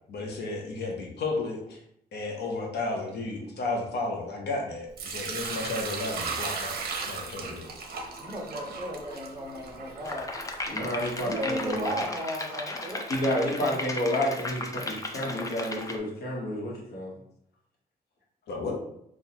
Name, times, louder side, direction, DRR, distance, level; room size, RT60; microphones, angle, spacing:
voice 1, 0.1-1.8 2.1-6.8 7.0-7.7 18.5-18.8, left 3 dB, 85° left, 0 dB, 0.8 m, -33 dB
Sink (filling or washing) / Liquid, 5.0-11.9, right 4 dB, 65° right, 0.6 m, -37 dB
voice 2, 8.2-10.3 11.2-13.1, equal, 20° right, -4 dB, 1.2 m, -35 dB
sound 1, 10.0-16.0, left 2 dB, 20° left, 0.4 m, -36 dB
voice 3, 10.7-12.0 13.1-17.1, left 1 dB, 65° left, -3 dB, 1.2 m, -30 dB
4.0 x 2.4 x 2.9 m, 0.72 s
cardioid pair, 115°, 17 cm